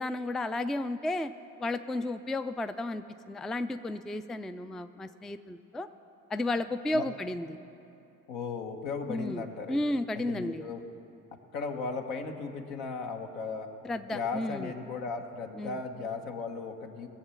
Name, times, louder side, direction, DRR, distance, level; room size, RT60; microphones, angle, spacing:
voice 1, 0.0-1.3 1.6-5.9 6.3-7.6 9.1-9.4 9.7-10.6 13.8-14.7 15.6-15.8, left 1 dB, ahead, 11 dB, 0.3 m, -33 dB
voice 2, 8.3-9.8 10.1-10.8 11.5-13.7 14.1-17.1, left 4 dB, 75° left, 3 dB, 1.3 m, -36 dB
18.5 x 7.2 x 7.1 m, 2.7 s
hypercardioid pair, 50°, 42 cm